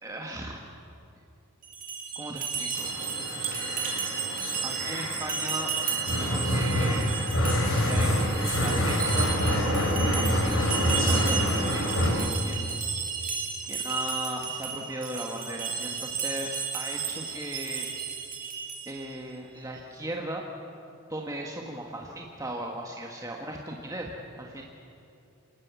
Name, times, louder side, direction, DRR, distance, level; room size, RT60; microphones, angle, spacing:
voice 1, 0.0-0.6 2.1-2.9 3.2-4.0 4.6-7.1 7.8-9.3 10.1-12.9 13.6-17.9 18.9-20.4 21.1-24.6, right 1 dB, 15° right, 0 dB, 1.6 m, -37 dB
sound 1, 1.6-19.1, right 6 dB, 40° right, 3.3 m, -33 dB
sound 2, 2.8-12.1, equal, 65° left, 5.8 m, -27 dB
27.5 x 19.5 x 8.3 m, 2.6 s
head